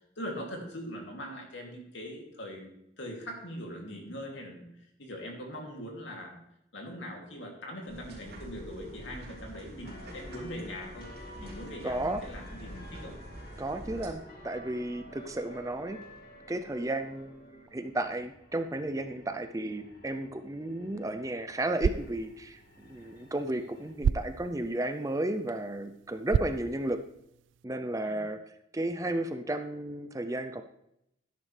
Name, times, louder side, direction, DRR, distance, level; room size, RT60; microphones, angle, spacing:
voice 1, 0.2-4.7 5.0-6.4 6.7-11.1 11.4-13.1 28.0-28.2, equal, 70° left, 0 dB, 2.7 m, -41 dB
sound 1, 7.9-14.1, right 1 dB, 55° right, 3.2 m, -46 dB
sound 2, 9.8-23.9, left 1 dB, 50° left, 2.1 m, -51 dB
voice 2, 11.8-12.2 13.6-16.0 16.5-27.0 27.6-28.4 28.7-30.6, right 1 dB, 15° right, 8 dB, 0.5 m, -33 dB
sound 3, 21.6-27.6, right 6 dB, 75° right, 0.3 m, -35 dB
12.5 x 10.5 x 3.3 m, 0.79 s
head